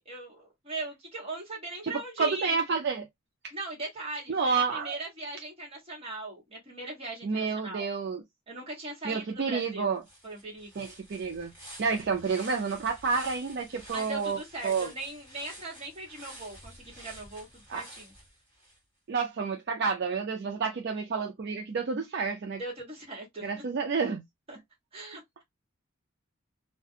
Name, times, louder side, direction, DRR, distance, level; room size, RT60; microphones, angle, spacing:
voice 1, 0.0-2.6 3.5-7.9 8.5-10.9 13.9-18.1 22.6-23.5 24.5-24.6 24.9-25.4, right 2 dB, 30° right, 1.2 m, -39 dB
voice 2, 1.8-3.1 4.3-5.0 7.2-8.2 9.0-10.0 10.8-11.5 11.8-14.9 17.7-17.8 19.1-22.6 23.4-24.2, right 5 dB, 55° right, 0.4 m, -30 dB
sound 1, 9.6-9.7 10.0-18.8, right 1 dB, 10° right, 1.5 m, -49 dB
2.4 x 2.2 x 2.6 m
head